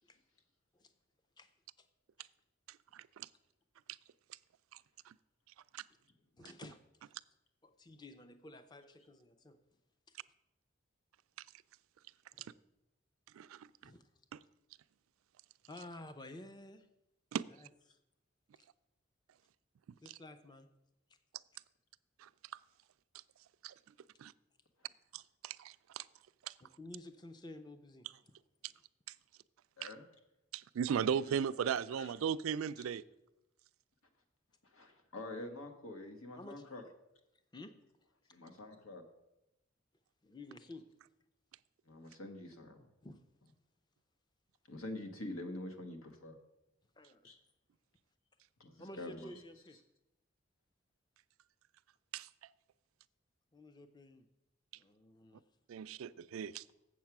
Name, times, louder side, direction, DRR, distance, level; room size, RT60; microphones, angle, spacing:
voice 1, 2.9-3.3 5.1-5.2 5.7-5.8 12.4-12.5 13.3-13.7 17.3-17.4 22.2-22.3 23.6-23.7 24.2-24.3 25.1-26.0 26.5-26.6 29.8-29.9 30.5-33.0 52.1-52.3 55.7-56.6, right 7 dB, 90° right, 15 dB, 0.3 m, -37 dB
voice 2, 6.4-6.8 7.6-9.6 12.4-12.5 13.8-14.0 15.7-16.9 17.6-18.0 20.0-20.7 26.6-28.1 36.4-36.6 37.5-37.7 38.4-38.5 40.2-40.9 43.0-43.2 47.0-47.3 48.8-49.8 53.5-54.3 54.7-55.4, left 1 dB, 20° left, 10 dB, 0.5 m, -52 dB
voice 3, 31.1-31.4 31.9-32.1 34.6-36.8 38.3-39.0 41.9-42.8 44.7-46.4 47.2-47.4 48.6-49.3, left 1 dB, 85° left, 5 dB, 1.3 m, -46 dB
7.4 x 7.3 x 5.9 m, 0.90 s
head